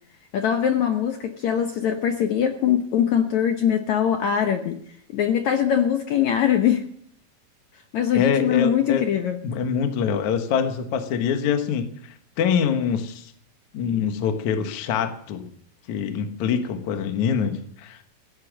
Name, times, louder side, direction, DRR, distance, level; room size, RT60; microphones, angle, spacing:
voice 1, 0.3-4.8 5.1-6.8 7.9-9.4, left 9 dB, 85° left, 6 dB, 1.6 m, -22 dB
voice 2, 8.1-9.0 9.4-13.3 13.7-15.5 15.9-18.0, left 7 dB, 60° left, 7 dB, 2.3 m, -25 dB
17.0 x 10.5 x 7.5 m, 0.62 s
omnidirectional pair, 4.7 m